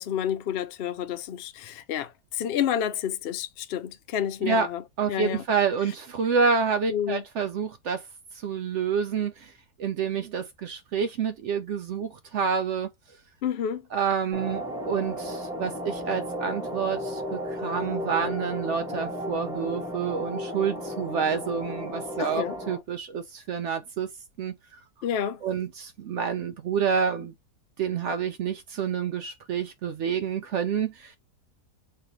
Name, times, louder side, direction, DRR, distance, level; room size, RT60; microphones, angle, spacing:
voice 1, 0.0-4.8 5.1-5.4 6.9-7.2 13.4-13.8 22.2-22.6 25.0-25.4, left 9 dB, 80° left, 0.5 m, -29 dB
voice 2, 5.0-8.1 8.3-9.5 9.8-12.9 13.9-24.1 24.4-24.8 25.4-27.3 27.8-31.2, right 6 dB, 75° right, 0.6 m, -28 dB
sound 1, 14.3-22.8, equal, ahead, 1.3 m, -34 dB
4.8 x 3.3 x 2.9 m
omnidirectional pair, 1.8 m